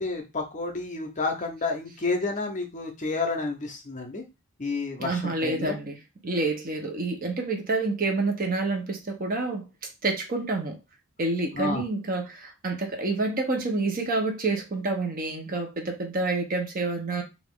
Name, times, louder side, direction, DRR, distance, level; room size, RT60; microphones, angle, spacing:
voice 1, 0.0-4.2 4.6-5.8 11.5-11.8, left 3 dB, 35° left, 4 dB, 0.6 m, -30 dB
voice 2, 5.0-6.0 6.2-9.6 10.0-10.8 11.2-17.2, right 3 dB, 40° right, 2 dB, 0.8 m, -28 dB
2.9 x 2.5 x 3.6 m, 0.25 s
head